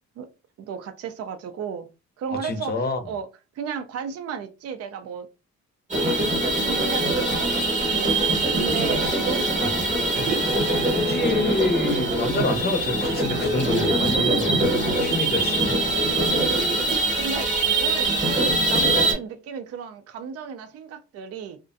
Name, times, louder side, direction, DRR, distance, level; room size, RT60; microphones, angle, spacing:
voice 1, 0.6-1.9 2.2-3.3 3.6-5.3 6.2-8.2 8.5-9.7 17.1-21.6, right 6 dB, 55° right, 0.4 m, -34 dB
voice 2, 2.3-3.0 8.9-9.8 10.9-15.8, left 3 dB, 35° left, 0.6 m, -28 dB
sound 1, 5.9-19.1, right 2 dB, 25° right, 1.0 m, -23 dB
Liquid, 10.0-17.7 18.1-18.2, right 5 dB, 80° right, 0.8 m, -33 dB
2.4 x 2.1 x 2.5 m
cardioid pair, 90°, 30 cm